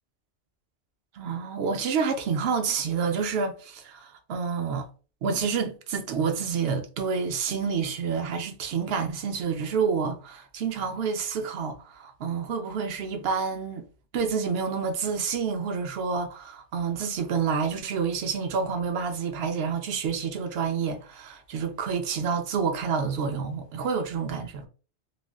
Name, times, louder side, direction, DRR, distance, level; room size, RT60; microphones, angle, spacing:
voice 1, 1.1-4.9 5.2-13.9 14.1-24.7, right 6 dB, 65° right, 0.7 m, -28 dB
3.2 x 2.4 x 2.2 m
omnidirectional pair, 1.1 m